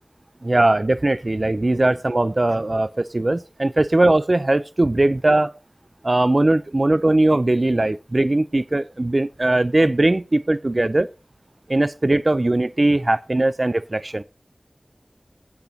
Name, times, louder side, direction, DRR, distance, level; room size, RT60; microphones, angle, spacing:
voice 1, 0.4-5.5 6.0-11.1 11.7-14.2, right 2 dB, 50° right, 0.4 m, -19 dB
15.5 x 8.2 x 2.8 m
wide cardioid pair, 45°, 0 cm